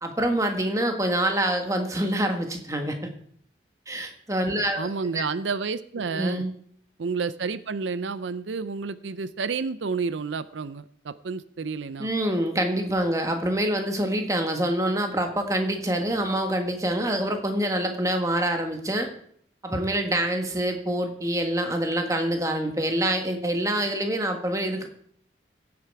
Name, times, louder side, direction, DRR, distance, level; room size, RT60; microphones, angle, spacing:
voice 1, 0.0-3.0 3.9-5.2 6.0-6.5 12.0-19.1 19.6-24.9, right 1 dB, 15° right, 4 dB, 1.5 m, -26 dB
voice 2, 4.8-6.4 7.0-12.1, right 5 dB, 85° right, 15 dB, 0.5 m, -30 dB
16.0 x 8.6 x 4.7 m, 0.63 s
head